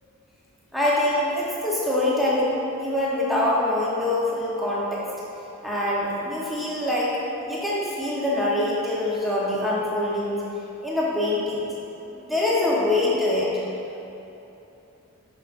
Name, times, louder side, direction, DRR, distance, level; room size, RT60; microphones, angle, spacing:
voice 1, 0.7-5.0 5.6-7.1 7.4-10.4 10.8-11.7 12.1-13.5, left 1 dB, ahead, -7 dB, 0.9 m, -24 dB
7.7 x 5.7 x 2.6 m, 3.0 s
head